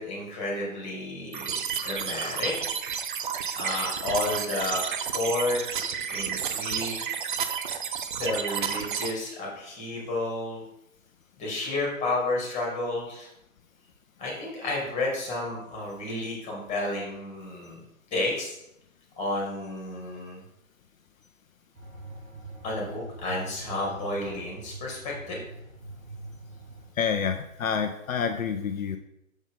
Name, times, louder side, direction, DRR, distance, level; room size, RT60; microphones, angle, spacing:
voice 1, 0.0-2.5 3.6-4.8 5.1-5.6 6.1-7.0 8.1-10.6 11.4-13.3 14.2-17.8 18.1-18.6 19.2-20.4 22.6-25.4, left 2 dB, 15° left, -2 dB, 2.1 m, -31 dB
sound 1, 1.3-9.1, right 7 dB, 40° right, 0.5 m, -31 dB
sound 2, 21.8-26.9, right 2 dB, 85° right, 2.0 m, -43 dB
voice 2, 27.0-29.0, left 7 dB, 70° left, 6 dB, 0.6 m, -28 dB
6.2 x 5.4 x 3.7 m, 0.81 s
figure-of-eight pair, 130°, 41 cm